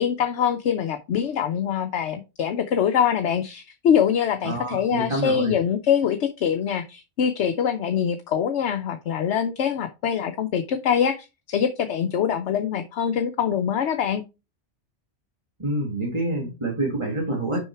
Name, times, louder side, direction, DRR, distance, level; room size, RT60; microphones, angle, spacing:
voice 1, 0.0-14.2, left 8 dB, 75° left, 7 dB, 1.0 m, -24 dB
voice 2, 4.4-5.6 15.6-17.6, right 1 dB, 25° right, -1 dB, 2.0 m, -27 dB
6.1 x 5.6 x 4.5 m, 0.27 s
omnidirectional pair, 1.2 m